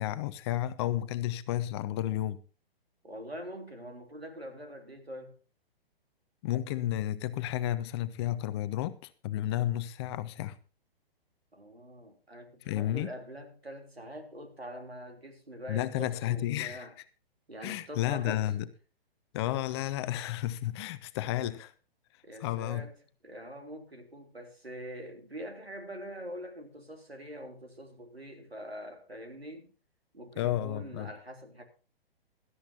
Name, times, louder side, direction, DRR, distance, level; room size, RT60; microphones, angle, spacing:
voice 1, 0.0-2.4 6.4-10.6 12.7-13.1 15.7-16.9 17.6-18.7 19.3-21.7 22.4-22.8 30.4-31.1, left 13 dB, 25° left, 0.7 m, -32 dB
voice 2, 3.0-5.4 11.5-16.9 17.5-18.6 22.2-23.0 23.2-29.7 30.1-31.6, equal, 90° right, 3.5 m, -44 dB
17.0 x 12.5 x 2.9 m
figure-of-eight pair, 125°, 30 cm